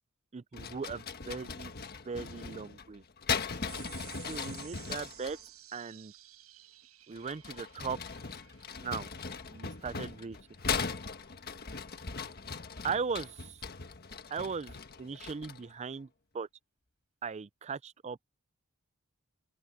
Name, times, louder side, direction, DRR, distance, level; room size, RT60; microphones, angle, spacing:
voice 1, 0.3-1.7 2.0-3.0 4.3-5.4 5.7-6.1 7.1-8.0 8.8-9.1 9.5-10.4 10.8-10.9 12.8-13.6 14.3-16.1 16.3-16.5 17.2-18.2, right 5 dB, 30° right, 0.4 m, -38 dB
sound 1, 0.5-5.4 7.1-15.7, left 5 dB, 45° left, 1.5 m, -39 dB
sound 2, 3.7-10.5, right 15 dB, 80° right, 7.0 m, -54 dB
open air
head